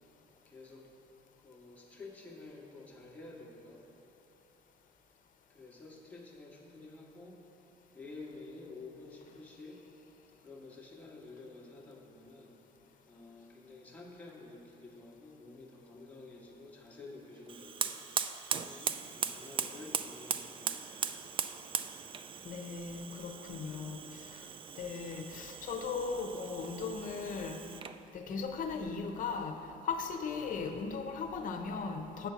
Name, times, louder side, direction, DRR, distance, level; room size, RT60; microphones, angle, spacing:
voice 1, 0.5-0.8 1.4-3.8 5.5-7.4 7.9-9.8 10.4-12.6 13.1-18.0 18.6-21.2, left 3 dB, 10° left, -3 dB, 1.4 m, -50 dB
Fire, 17.5-28.0, right 7 dB, 30° right, 0.3 m, -39 dB
voice 2, 22.4-24.4 24.8-27.6 28.1-29.5 29.8-32.3, left 5 dB, 50° left, 5 dB, 0.8 m, -37 dB
7.9 x 4.5 x 6.9 m, 3.0 s
cardioid pair, 110°, 17 cm